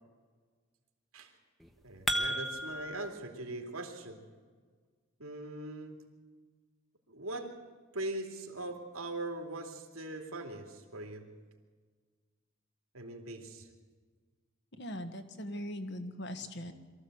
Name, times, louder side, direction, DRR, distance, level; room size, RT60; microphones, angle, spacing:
sound 1, 1.6-3.1, equal, ahead, 1.1 m, -34 dB
voice 1, 1.8-4.2 5.2-6.0 7.1-7.6 7.9-11.3 12.9-13.7, right 2 dB, 90° right, 4 dB, 2.9 m, -41 dB
voice 2, 14.8-16.7, left 1 dB, 50° left, 8 dB, 1.6 m, -40 dB
23.0 x 14.5 x 8.0 m, 1.5 s
head